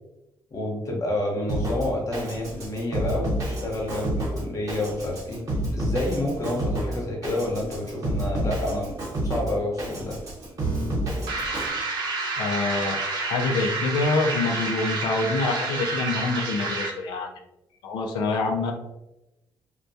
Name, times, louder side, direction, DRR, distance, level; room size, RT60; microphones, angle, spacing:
voice 1, 0.5-5.4 5.7-8.9 9.2-10.2, left 1 dB, 45° left, -1 dB, 0.9 m, -29 dB
Drum kit, 1.5-11.7, right 1 dB, 50° right, 1.0 m, -29 dB
sound 1, 11.3-17.1, right 3 dB, 80° right, 0.5 m, -29 dB
voice 2, 12.4-17.3 17.8-18.7, left 3 dB, 85° left, 3 dB, 0.4 m, -26 dB
2.2 x 2.2 x 2.6 m, 0.92 s
cardioid pair, 75°, 8 cm